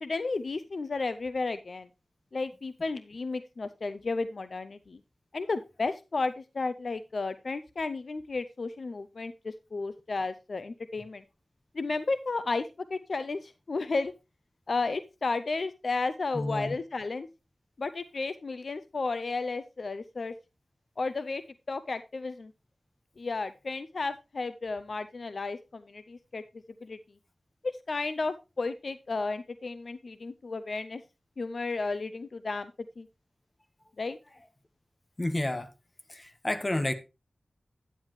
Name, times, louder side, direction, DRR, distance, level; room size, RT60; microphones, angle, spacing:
voice 1, 0.0-1.9 2.3-5.0 5.3-11.2 11.7-14.1 14.7-17.3 17.8-20.3 21.0-21.4 21.7-22.5 23.2-26.4 26.8-27.0 27.6-31.0 31.4-32.7 33.0-33.1 34.0-34.2, left 3 dB, 60° left, 0.5 m, -33 dB
voice 2, 16.3-16.8 35.2-35.7 36.1-36.9, left 1 dB, 25° left, 1.2 m, -30 dB
9.9 x 9.8 x 3.1 m
wide cardioid pair, 90°, 0 cm